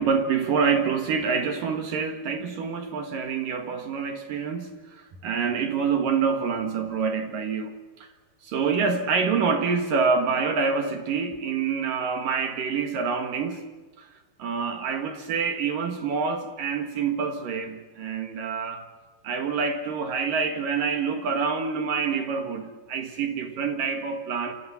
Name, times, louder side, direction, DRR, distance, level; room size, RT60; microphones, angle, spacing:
voice 1, 0.0-8.1 8.4-13.6 14.0-14.1 14.4-18.8 19.2-24.5, right 5 dB, 60° right, 3.2 m, -26 dB
29.0 x 26.0 x 7.2 m
omnidirectional pair, 4.7 m